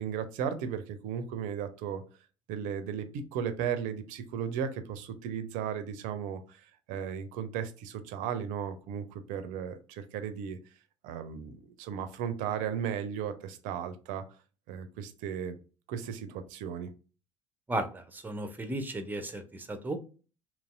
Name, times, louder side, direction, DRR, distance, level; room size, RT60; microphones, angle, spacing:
voice 1, 0.0-2.0 2.5-10.6 11.0-14.2 14.7-15.6 15.9-16.9, right 8 dB, 55° right, 10 dB, 0.5 m, -35 dB
voice 2, 18.1-19.4 19.7-20.0, right 1 dB, 10° right, 8 dB, 0.6 m, -34 dB
2.9 x 2.6 x 2.4 m, 0.35 s
figure-of-eight pair, 65°, 16 cm